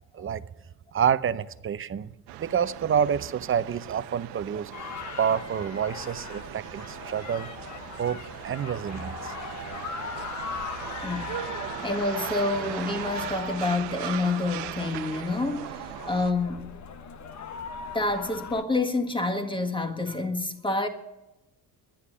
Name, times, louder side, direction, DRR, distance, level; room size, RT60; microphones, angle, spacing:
voice 1, 0.9-2.1 2.4-4.7 5.2-7.5 8.0-8.2 8.4-9.3, right 8 dB, 30° right, 0.6 m, -28 dB
sound 1, 2.3-16.3, right 13 dB, 90° right, 0.9 m, -39 dB
sound 2, 4.7-18.6, left 6 dB, 45° left, 1.1 m, -40 dB
voice 2, 11.8-16.7 17.9-20.9, left 2 dB, 10° left, 1.6 m, -28 dB
11.0 x 10.0 x 10.0 m
cardioid pair, 110°, 40 cm